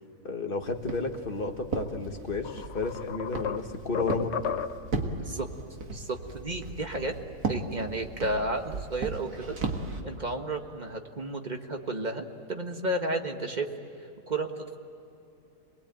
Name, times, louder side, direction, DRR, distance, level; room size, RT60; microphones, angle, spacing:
voice 1, 0.2-4.4, left 3 dB, 35° left, 4 dB, 1.6 m, -32 dB
Walk footsteps, 0.6-10.0, right 3 dB, 80° right, 2.3 m, -36 dB
sound 1, 1.9-2.0 2.4-5.0, left 7 dB, 55° left, 0.9 m, -34 dB
voice 2, 5.9-7.1 7.5-9.6 10.0-13.7 14.3-14.8, right 2 dB, 30° right, 4 dB, 1.6 m, -32 dB
27.0 x 20.5 x 9.0 m, 2.8 s
omnidirectional pair, 1.6 m